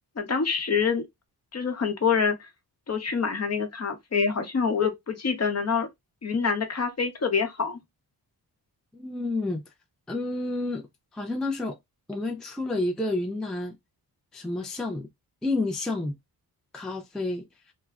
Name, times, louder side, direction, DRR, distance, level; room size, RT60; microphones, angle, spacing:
voice 1, 0.2-1.1 1.5-2.4 2.9-5.9 6.2-7.8, left 5 dB, 40° left, 0.8 m, -26 dB
voice 2, 8.9-9.6 10.1-10.9 11.1-11.8 12.1-13.8 14.3-15.1 15.4-16.2 16.7-17.5, left 2 dB, ahead, 0.4 m, -30 dB
2.2 x 2.1 x 3.4 m
cardioid pair, 75°, 39 cm